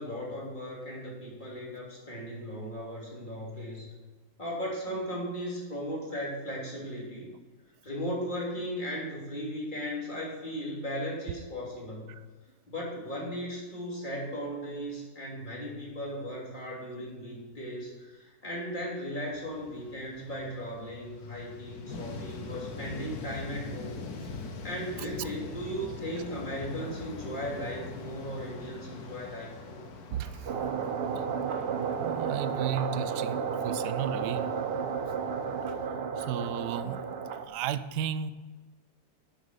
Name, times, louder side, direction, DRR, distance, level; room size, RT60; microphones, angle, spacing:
voice 1, 0.0-3.9 4.4-7.3 7.8-12.2 12.7-29.8, equal, 25° left, -3 dB, 3.2 m, -37 dB
sound 1, 19.3-35.9, left 3 dB, 65° left, 1.6 m, -43 dB
voice 2, 30.1-30.5 31.2-31.3 31.9-34.5 35.7-35.8 36.2-37.0 37.5-38.3, right 9 dB, 75° right, 13 dB, 1.2 m, -34 dB
sound 2, 30.5-37.5, right 6 dB, 60° right, 0.6 m, -32 dB
11.5 x 7.9 x 5.2 m, 1.4 s
omnidirectional pair, 1.8 m